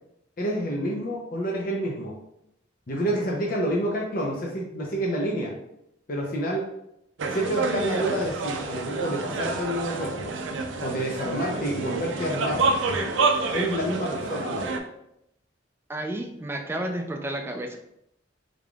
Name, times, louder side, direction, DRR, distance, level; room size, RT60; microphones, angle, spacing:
voice 1, 0.4-2.2 2.9-5.5 6.1-6.7 7.3-10.3 10.8-12.7 13.5-14.7, equal, 50° left, -2 dB, 0.6 m, -28 dB
sound 1, 7.2-14.8, right 3 dB, 85° right, 0.4 m, -28 dB
voice 2, 15.9-17.8, right 1 dB, 10° right, 3 dB, 0.3 m, -31 dB
3.7 x 3.3 x 2.3 m, 0.80 s
head